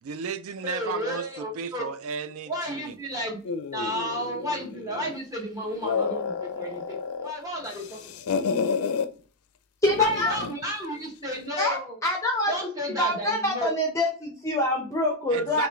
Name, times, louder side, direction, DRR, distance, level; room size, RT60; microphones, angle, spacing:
voice 1, 0.0-3.0 15.3-15.7, right 6 dB, 75° right, 12 dB, 0.4 m, -34 dB
voice 2, 0.6-1.9 2.5-3.4 3.7-8.0 10.0-11.9 12.5-13.7, equal, 15° right, -1 dB, 0.9 m, -32 dB
sound 1, 3.4-5.2 5.6-7.3 7.6-9.1 9.9-10.6, left 5 dB, 80° left, 0.4 m, -30 dB
voice 3, 9.8-10.4 11.6-12.5 13.0-15.7, left 1 dB, 15° left, 0 dB, 0.5 m, -25 dB
3.0 x 2.8 x 3.4 m, 0.40 s
head